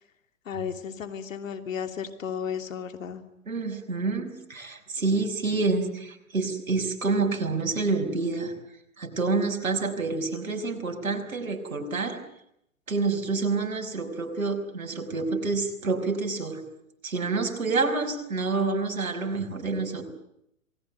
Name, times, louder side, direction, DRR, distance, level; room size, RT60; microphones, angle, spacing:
voice 1, 0.4-3.2, left 7 dB, 70° left, 7 dB, 2.9 m, -34 dB
voice 2, 3.5-8.5 9.0-12.2 12.9-16.6 17.0-20.0, right 3 dB, 80° right, 5 dB, 5.6 m, -28 dB
27.5 x 20.0 x 9.3 m, 0.77 s
hypercardioid pair, 120°, 41 cm